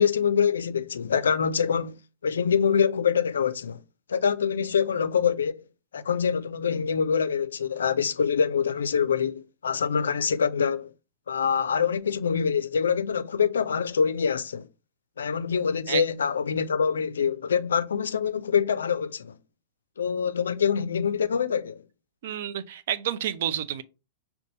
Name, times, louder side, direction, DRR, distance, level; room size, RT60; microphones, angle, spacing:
voice 1, 0.0-3.8 4.1-5.6 5.9-10.9 11.3-14.7 15.2-19.3 20.0-21.8, left 7 dB, 80° left, 0.4 m, -25 dB
voice 2, 22.2-23.8, right 10 dB, 65° right, 0.4 m, -29 dB
5.3 x 2.3 x 3.9 m
hypercardioid pair, 100°, 0 cm